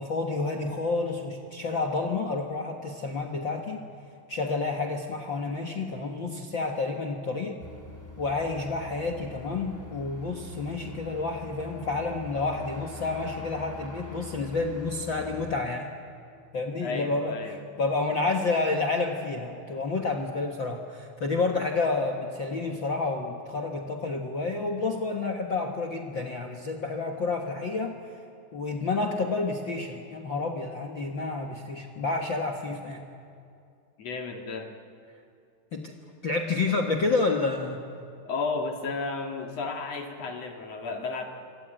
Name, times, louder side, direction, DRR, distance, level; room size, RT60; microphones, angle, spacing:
voice 1, 0.0-3.8 4.3-7.6 8.2-15.9 16.5-27.9 28.5-33.1 35.7-35.9 36.2-37.8, left 3 dB, 70° left, 5 dB, 1.1 m, -29 dB
sound 1, 7.6-15.6, left 3 dB, 5° left, 1.9 m, -44 dB
voice 2, 16.8-17.6 34.0-34.7 38.3-41.2, left 4 dB, 45° left, 3 dB, 2.7 m, -33 dB
26.5 x 24.5 x 9.0 m, 2.4 s
omnidirectional pair, 4.6 m